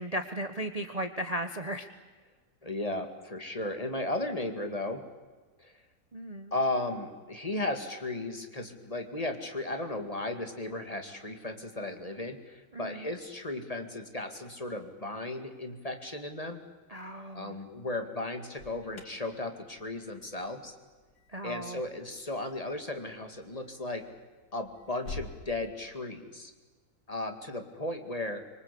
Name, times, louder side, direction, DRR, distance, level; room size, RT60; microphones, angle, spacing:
voice 1, 0.0-1.9 6.1-6.5 12.7-13.1 16.9-17.5 21.3-21.8, right 1 dB, 30° right, 7 dB, 1.0 m, -36 dB
voice 2, 2.6-5.0 5.6-5.7 6.5-16.6 17.3-20.7 21.4-24.1 24.5-26.5 27.1-28.4, left 2 dB, 25° left, 6 dB, 2.3 m, -35 dB
Alarm, 18.5-25.4, left 4 dB, 85° left, 2.7 m, -50 dB
25.0 x 24.0 x 8.5 m, 1.4 s
omnidirectional pair, 1.6 m